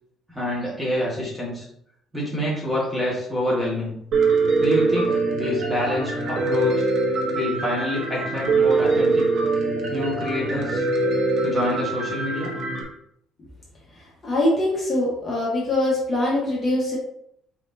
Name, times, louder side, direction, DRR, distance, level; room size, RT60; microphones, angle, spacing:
voice 1, 0.3-1.7 2.1-3.9 4.6-6.9 7.3-9.4 9.9-10.9 11.4-12.5, left 1 dB, 5° right, -6 dB, 1.8 m, -27 dB
Piano, 4.1-12.8, right 3 dB, 55° right, 1.0 m, -23 dB
voice 2, 13.9-17.0, left 1 dB, 30° left, -5 dB, 1.3 m, -23 dB
4.4 x 4.1 x 2.8 m, 0.71 s
cardioid pair, 160°, 0 cm